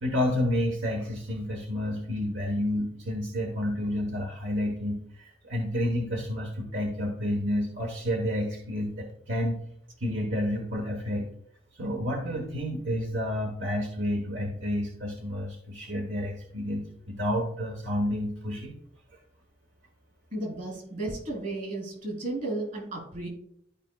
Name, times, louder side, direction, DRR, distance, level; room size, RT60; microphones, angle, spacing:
voice 1, 0.0-9.6 10.0-11.3 11.8-18.7, left 1 dB, 80° right, 2 dB, 1.1 m, -30 dB
voice 2, 20.3-23.3, right 2 dB, 50° right, 0 dB, 2.9 m, -34 dB
12.0 x 5.0 x 2.3 m, 0.66 s
head